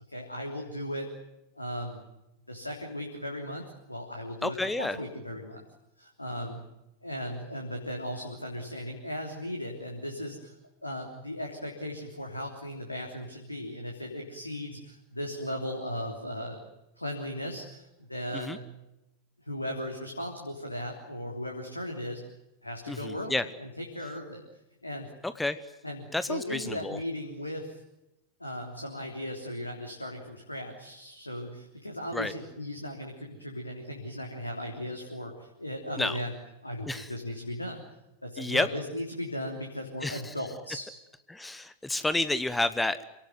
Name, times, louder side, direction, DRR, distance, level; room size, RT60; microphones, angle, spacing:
voice 1, 0.1-1.1 1.5-2.0 2.5-5.6 6.0-6.6 7.0-10.5 10.8-16.6 17.0-18.6 19.5-22.2 22.6-24.4 24.8-25.1 25.8-27.8 28.4-36.3 36.6-37.8 38.2-40.9, left 1 dB, 85° left, 1 dB, 3.3 m, -37 dB
voice 2, 4.4-5.0 18.3-18.6 22.9-23.4 25.2-25.6 26.1-27.0 32.1-32.3 36.0-36.2 36.8-37.1 38.4-38.7 40.0-40.3 41.3-43.0, left 2 dB, 5° left, 13 dB, 1.0 m, -30 dB
27.5 x 18.5 x 9.4 m, 0.94 s
figure-of-eight pair, 90°, 0 cm